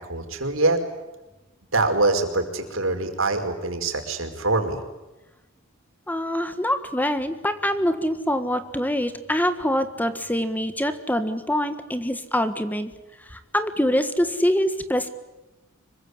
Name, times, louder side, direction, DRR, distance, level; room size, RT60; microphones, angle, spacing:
voice 1, 0.1-0.8 1.7-4.8, right 2 dB, 75° right, 5 dB, 5.1 m, -24 dB
voice 2, 6.1-12.9 13.3-15.1, equal, 10° left, 10 dB, 1.6 m, -24 dB
26.0 x 23.5 x 9.8 m, 1.0 s
head